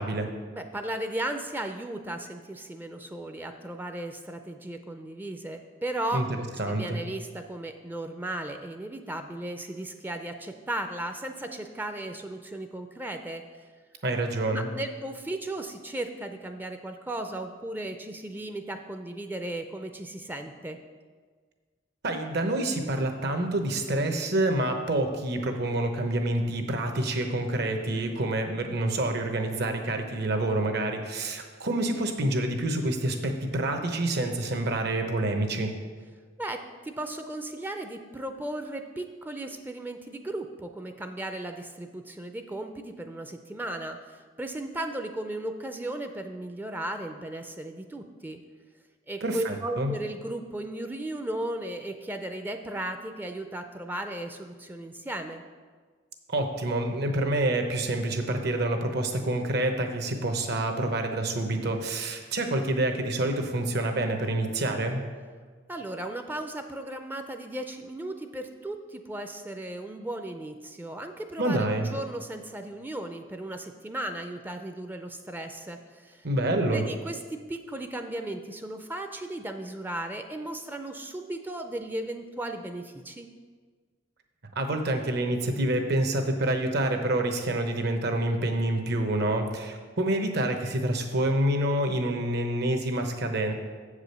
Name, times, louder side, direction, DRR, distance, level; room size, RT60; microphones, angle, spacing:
voice 1, 0.5-6.3 6.7-13.4 14.5-20.8 36.4-48.4 49.1-55.4 65.7-76.3 76.7-83.3, right 1 dB, 10° right, 6 dB, 0.4 m, -36 dB
voice 2, 6.6-7.0 14.0-14.7 22.0-35.7 49.2-49.9 56.3-65.1 71.4-71.9 76.2-76.9 84.6-93.5, right 1 dB, 60° right, 5 dB, 0.9 m, -27 dB
7.5 x 4.9 x 6.7 m, 1.5 s
head